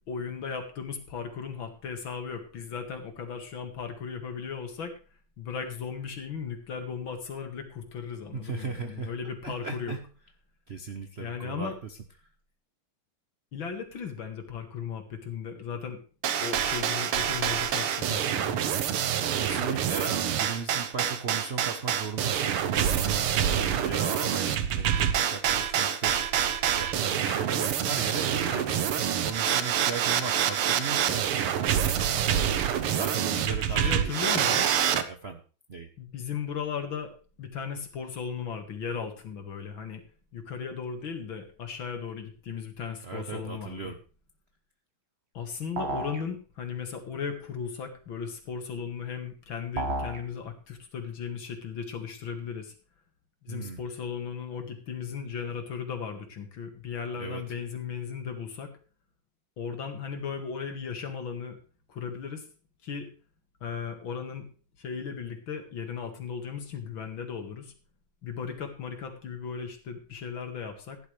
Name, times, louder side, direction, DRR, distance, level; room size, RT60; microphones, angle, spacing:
voice 1, 0.1-4.9 5.4-10.0 11.2-11.8 13.5-16.0 16.4-18.6 33.7-34.7 36.0-37.1 37.4-40.0 40.3-43.9 45.3-52.7 53.4-58.7 59.6-61.6 61.9-62.4 62.8-63.1 63.6-64.5 64.8-67.7 68.2-71.0, left 6 dB, 65° left, 5 dB, 2.6 m, -36 dB
voice 2, 8.3-9.1 9.4-10.0 10.7-12.0 19.4-26.2 26.8-32.5 32.9-34.7 35.1-35.4 35.7-35.9 43.0-44.0 53.5-53.8 57.2-57.4, right 4 dB, 50° right, 7 dB, 0.7 m, -37 dB
sound 1, 16.2-35.0, right 9 dB, 85° right, 1.9 m, -27 dB
sound 2, 45.8-46.2 49.8-50.2, right 2 dB, 35° right, 1.2 m, -31 dB
16.0 x 11.0 x 3.3 m, 0.36 s
omnidirectional pair, 2.4 m